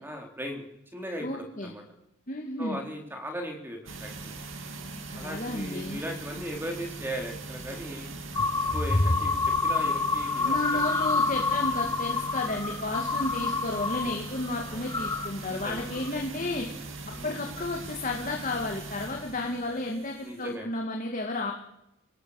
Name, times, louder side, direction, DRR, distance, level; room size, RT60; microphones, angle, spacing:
voice 1, 0.0-0.7 0.9-1.8 2.6-4.4 5.1-8.1 8.7-10.8 11.1-11.3 14.0-14.4 14.7-14.9 15.5-16.0 17.1-17.4 20.2-20.7, equal, 10° right, 3 dB, 3.8 m, -38 dB
voice 2, 1.2-1.7 2.3-2.8 5.1-6.0 10.4-16.7 17.2-21.5, left 2 dB, 40° left, 1 dB, 2.3 m, -32 dB
sound 1, 3.9-20.5, right 3 dB, 65° right, 2.6 m, -41 dB
sound 2, 8.3-14.1 14.4-15.3 15.8-16.1, left 3 dB, 20° left, 1.1 m, -27 dB
25.0 x 18.5 x 6.6 m, 0.84 s
head